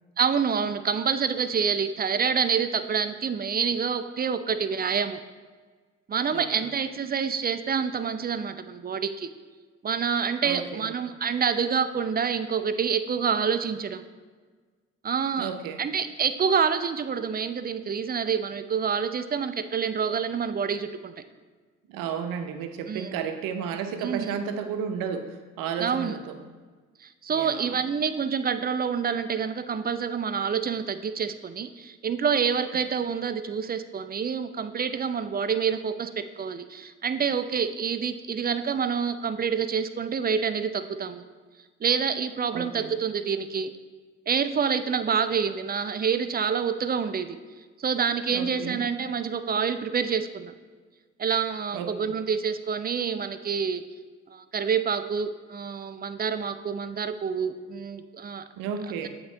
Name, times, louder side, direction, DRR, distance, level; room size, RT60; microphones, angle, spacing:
voice 1, 0.2-5.2 6.1-9.3 9.8-14.0 15.0-15.5 15.8-21.1 22.9-23.1 24.0-24.3 25.8-26.1 27.2-41.2 41.8-43.7 44.3-47.4 47.8-50.5 51.2-53.8 54.3-58.4, right 6 dB, 25° right, 10 dB, 0.4 m, -27 dB
voice 2, 6.3-6.7 10.4-10.9 15.4-15.8 21.9-26.3 27.3-27.8 42.5-42.9 48.3-48.9 51.7-52.1 58.6-59.1, right 7 dB, 75° right, 7 dB, 0.7 m, -33 dB
7.9 x 3.9 x 3.8 m, 1.4 s
hypercardioid pair, 45°, 34 cm